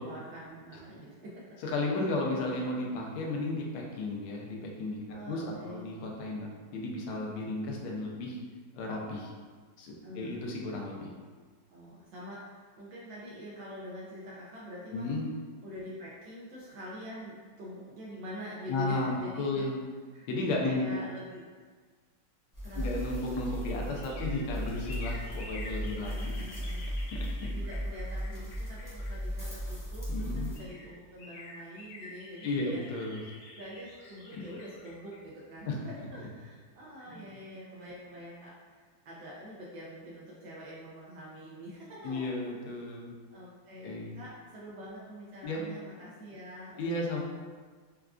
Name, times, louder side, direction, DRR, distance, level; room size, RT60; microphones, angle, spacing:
voice 1, 0.0-1.6 5.1-5.9 10.0-10.4 11.7-15.1 15.6-19.7 20.1-20.3 20.6-21.5 22.6-23.0 26.0-26.9 27.5-32.8 33.5-42.3 43.3-47.2, equal, 75° right, -6 dB, 1.3 m, -45 dB
voice 2, 1.6-8.4 8.7-9.3 9.8-11.1 14.9-15.3 18.7-19.8 20.3-20.8 22.8-26.1 27.1-27.5 30.1-30.5 32.4-33.2 34.3-34.4 35.6-36.1 37.1-37.2 42.0-43.1 43.8-44.1 45.4-45.6 46.8-47.2, left 2 dB, 85° left, -1 dB, 1.4 m, -34 dB
sound 1, 22.5-30.6, equal, 15° left, 0.8 m, -36 dB
sound 2, 23.1-29.7 30.2-30.3 30.5-36.3 36.7-36.8, left 2 dB, 65° left, 1.0 m, -49 dB
4.5 x 2.3 x 2.4 m, 1.5 s
omnidirectional pair, 2.1 m